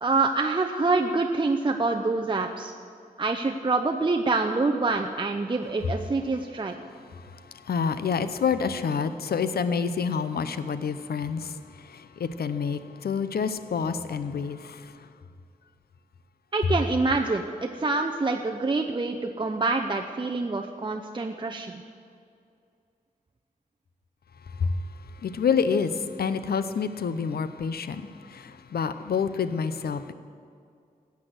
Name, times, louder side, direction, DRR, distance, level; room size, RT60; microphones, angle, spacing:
voice 1, 0.0-2.7 3.2-6.7 16.5-21.8, right 3 dB, 30° right, 3 dB, 0.7 m, -26 dB
voice 2, 7.7-11.6 11.8-14.8 24.6-24.7 25.2-30.1, left 6 dB, 80° left, 12 dB, 0.7 m, -28 dB
14.0 x 8.4 x 7.9 m, 2.3 s
cardioid pair, 70°, 16 cm